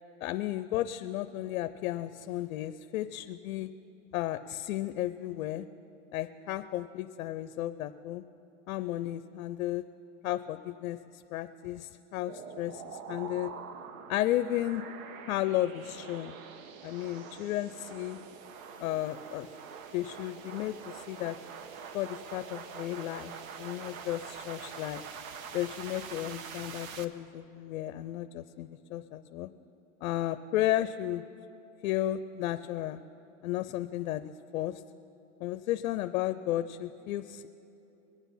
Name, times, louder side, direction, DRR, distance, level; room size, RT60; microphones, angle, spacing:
voice 1, 0.2-3.7 4.1-5.7 6.1-8.2 8.7-9.8 10.2-13.5 14.1-14.8 15.3-16.3 16.8-18.2 18.8-19.5 19.9-21.4 21.9-23.3 23.6-25.0 25.5-29.5 30.0-31.2 31.8-33.0 33.4-34.8 35.4-37.5, left 14 dB, 75° left, 11 dB, 0.6 m, -33 dB
sound 1, 12.3-27.0, right 6 dB, 80° right, 1.0 m, -45 dB
22.0 x 8.2 x 5.7 m, 2.9 s
supercardioid pair, 135°, 41 cm